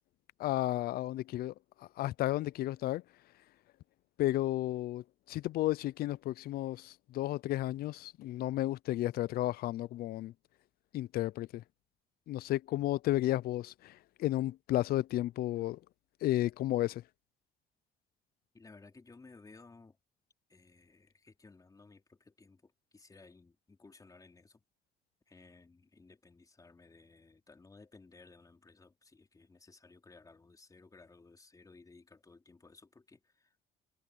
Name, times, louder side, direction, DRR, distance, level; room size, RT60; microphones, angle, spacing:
voice 1, 0.4-1.5 2.0-3.0 4.2-10.3 10.9-11.6 12.3-15.8 16.2-17.0, left 15 dB, 65° left, 0.5 m, -33 dB
voice 2, 18.5-20.0 20.5-24.6 25.3-33.6, left 3 dB, 20° left, 4.0 m, -58 dB
cardioid pair, 110°, 17 cm